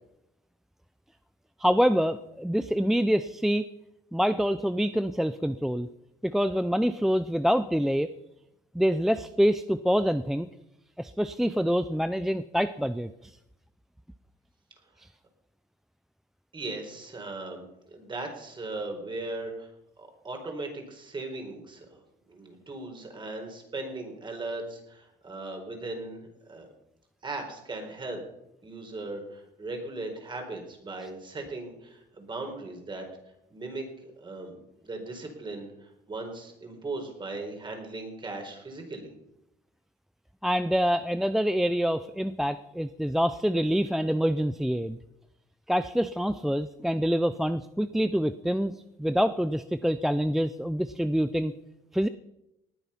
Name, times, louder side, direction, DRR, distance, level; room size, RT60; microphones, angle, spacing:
voice 1, 1.6-3.7 4.1-5.9 6.2-8.1 8.7-10.5 11.0-13.3 15.0-15.1 40.4-45.0 45.7-51.5 51.9-52.1, equal, ahead, 12 dB, 0.5 m, -26 dB
voice 2, 16.5-19.7 20.0-22.0 22.3-26.7 27.2-28.2 28.6-33.1 33.5-39.1, right 2 dB, 30° right, 3 dB, 4.3 m, -38 dB
19.0 x 9.7 x 5.8 m, 0.85 s
cardioid pair, 110°, 17 cm